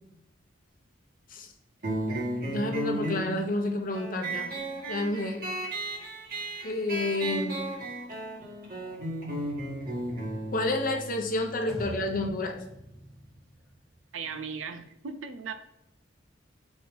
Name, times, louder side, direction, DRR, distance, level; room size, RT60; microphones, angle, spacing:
sound 1, 1.8-12.9, right 1 dB, 50° right, 1.8 m, -35 dB
voice 1, 2.4-4.6 4.9-5.4 6.6-7.6 10.5-12.6, left 2 dB, 45° left, 4 dB, 0.9 m, -30 dB
sound 2, 11.7-14.4, right 1 dB, ahead, 1.1 m, -46 dB
voice 2, 14.1-15.5, right 5 dB, 90° right, 9 dB, 0.6 m, -37 dB
4.6 x 4.1 x 5.3 m, 0.84 s
head